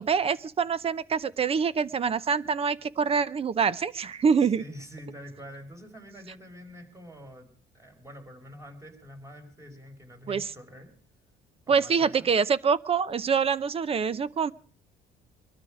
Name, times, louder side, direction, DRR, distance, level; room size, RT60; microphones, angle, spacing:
voice 1, 0.0-4.6 10.3-10.5 11.7-14.5, right 6 dB, 35° right, 18 dB, 0.8 m, -25 dB
voice 2, 4.4-7.5 7.7-10.9 11.7-12.3, equal, 15° right, 4 dB, 4.7 m, -46 dB
23.0 x 12.5 x 4.9 m, 0.43 s
cardioid pair, 110°, 17 cm